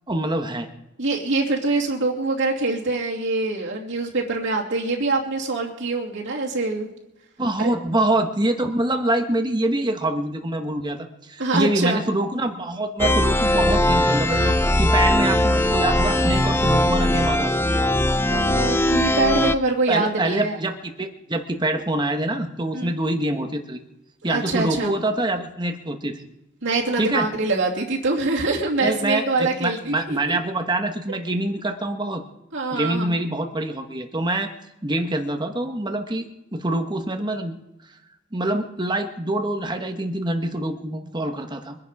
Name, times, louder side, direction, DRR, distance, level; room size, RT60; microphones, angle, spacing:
voice 1, 0.1-0.7 7.4-17.6 19.9-23.8 24.2-26.2 27.0-27.3 28.8-32.2 32.7-34.5 34.8-37.6 38.3-41.8, right 1 dB, 20° right, 5 dB, 1.3 m, -25 dB
voice 2, 1.0-6.9 7.6-7.7 11.4-12.0 18.3-20.6 22.7-22.9 24.3-24.9 26.6-30.4 31.1-31.2 32.5-33.2, right 3 dB, 60° right, -3 dB, 2.7 m, -24 dB
sound 1, 13.0-19.5, left 1 dB, 10° left, 0.5 m, -20 dB
23.5 x 10.5 x 4.9 m, 0.94 s
head